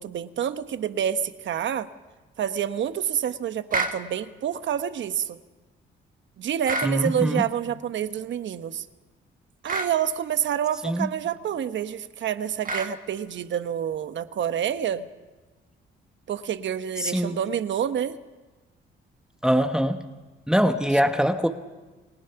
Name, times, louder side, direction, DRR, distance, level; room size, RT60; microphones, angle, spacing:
voice 1, 0.0-1.9 2.4-5.4 6.4-8.9 9.6-15.1 16.3-18.2, right 9 dB, 65° right, 11 dB, 1.2 m, -28 dB
sound 1, 3.7-4.0 6.6-7.0 9.7-9.9 12.6-12.9, right 3 dB, 40° right, 2.0 m, -28 dB
voice 2, 6.8-7.4 10.8-11.1 17.0-17.4 19.4-20.1 20.5-21.5, equal, 5° right, 6 dB, 1.2 m, -23 dB
28.5 x 19.0 x 5.9 m, 1.2 s
cardioid pair, 85°, 21 cm